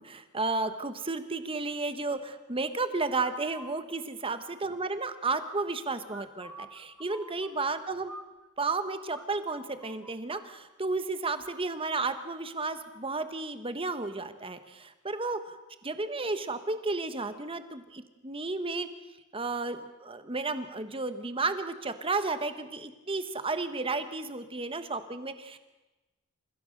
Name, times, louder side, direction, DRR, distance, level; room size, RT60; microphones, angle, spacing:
voice 1, 0.0-8.1 8.6-15.5 15.8-18.9 19.3-25.6, right 3 dB, 25° right, 10 dB, 1.3 m, -33 dB
sound 1, 3.2-3.8 6.1-8.8 9.1-9.3 9.5-10.5, equal, 5° left, 1.8 m, -47 dB
29.0 x 16.0 x 6.6 m, 1.1 s
head